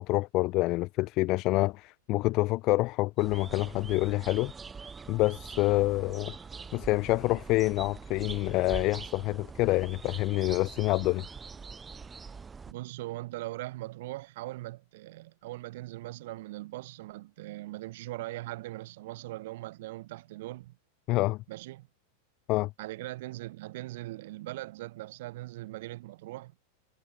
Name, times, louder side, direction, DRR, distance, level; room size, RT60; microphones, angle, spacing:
voice 1, 0.0-4.5 5.1-6.3 6.7-11.2 21.1-21.4 22.5-22.7, left 20 dB, 40° left, 0.4 m, -27 dB
sound 1, 3.2-12.7, right 5 dB, 15° right, 3.4 m, -44 dB
voice 2, 12.7-20.8 21.5-21.9 22.8-26.5, right 18 dB, 55° right, 6.1 m, -40 dB
figure-of-eight pair, 90°, 0 cm